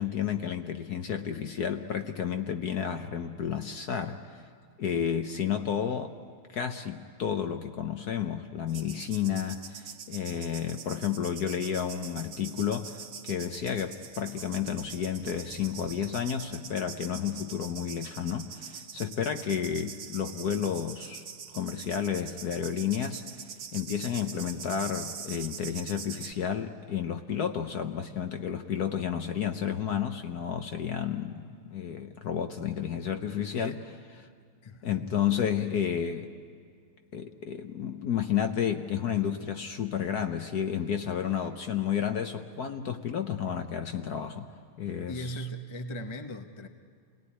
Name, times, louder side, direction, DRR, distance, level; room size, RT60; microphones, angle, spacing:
voice 1, 0.0-4.4 4.8-6.1 6.5-21.2 21.5-23.2 23.7-33.8 34.8-36.3 37.1-44.5 44.8-45.5, left 8 dB, 60° left, 6 dB, 1.1 m, -31 dB
sound 1, 8.7-26.3, right 7 dB, 75° right, 2.3 m, -44 dB
voice 2, 34.6-35.2 45.1-46.7, equal, 25° left, 6 dB, 0.6 m, -38 dB
28.0 x 18.5 x 10.0 m, 2.1 s
omnidirectional pair, 2.4 m